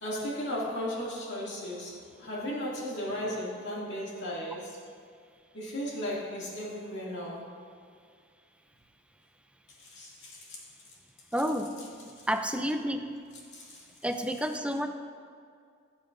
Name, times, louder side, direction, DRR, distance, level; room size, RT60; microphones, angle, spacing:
voice 1, 0.0-4.8 5.5-7.4 9.8-10.6 13.5-13.8, equal, 60° left, -5 dB, 2.4 m, -35 dB
voice 2, 11.3-11.7 12.3-13.1 14.0-14.9, equal, 5° right, 6 dB, 0.5 m, -29 dB
16.5 x 7.2 x 2.6 m, 2.3 s
head